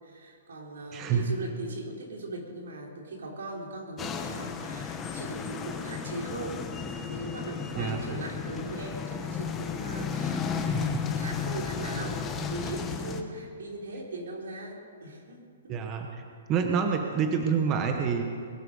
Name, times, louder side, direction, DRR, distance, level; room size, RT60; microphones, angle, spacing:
voice 1, 0.0-6.6 7.1-15.8, right 2 dB, 85° right, -1 dB, 4.3 m, -39 dB
voice 2, 0.9-1.3 7.8-8.0 10.6-11.0 15.7-16.1 16.5-18.2, right 6 dB, 20° right, 4 dB, 1.1 m, -27 dB
sound 1, 4.0-13.2, left 6 dB, 15° left, 1.1 m, -33 dB
21.5 x 12.0 x 5.4 m, 2.4 s
hypercardioid pair, 160°, 0 cm